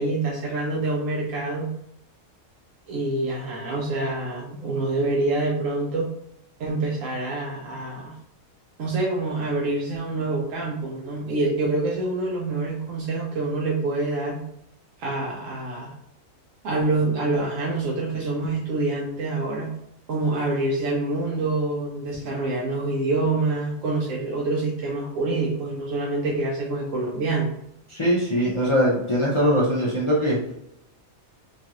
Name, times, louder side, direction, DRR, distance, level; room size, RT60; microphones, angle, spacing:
voice 1, 0.0-1.7 2.9-6.1 6.6-8.1 8.8-14.4 15.0-15.9 16.6-19.7 20.1-27.5, right 2 dB, 70° right, -3 dB, 1.0 m, -26 dB
voice 2, 27.9-30.5, equal, 40° left, -7 dB, 0.4 m, -21 dB
3.0 x 2.4 x 2.8 m, 0.76 s
omnidirectional pair, 1.4 m